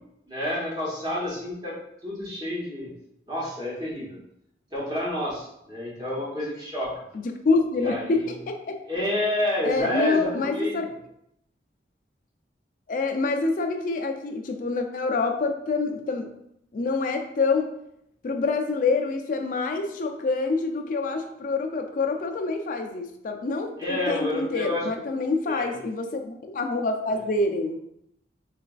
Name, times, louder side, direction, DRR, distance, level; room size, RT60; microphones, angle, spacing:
voice 1, 0.3-1.7 2.0-2.9 3.3-4.2 4.7-7.0 7.8-8.3 8.9-10.8 23.8-24.9 25.5-25.7, left 1 dB, 20° right, -6 dB, 1.0 m, -29 dB
voice 2, 7.1-8.8 9.6-10.9 12.9-16.3 16.7-17.7 18.2-27.8, left 3 dB, 45° left, 4 dB, 0.3 m, -26 dB
3.9 x 2.4 x 2.3 m, 0.77 s
head